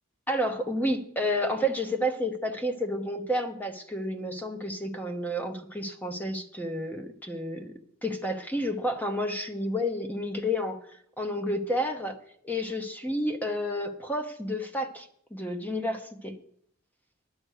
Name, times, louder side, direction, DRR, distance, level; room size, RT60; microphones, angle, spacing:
voice 1, 0.3-7.7 8.0-10.8 11.2-12.2 12.4-16.3, equal, 10° left, 6 dB, 0.9 m, -30 dB
10.5 x 7.8 x 6.5 m, 0.66 s
head